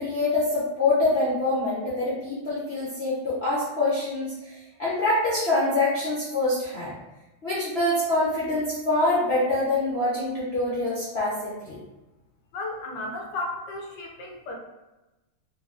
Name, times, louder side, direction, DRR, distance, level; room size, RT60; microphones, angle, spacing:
voice 1, 0.0-6.9 7.4-11.8, left 2 dB, 55° left, -9 dB, 0.7 m, -25 dB
voice 2, 12.5-14.6, left 2 dB, 70° left, 0 dB, 1.1 m, -34 dB
3.8 x 2.9 x 2.4 m, 1.1 s
omnidirectional pair, 2.2 m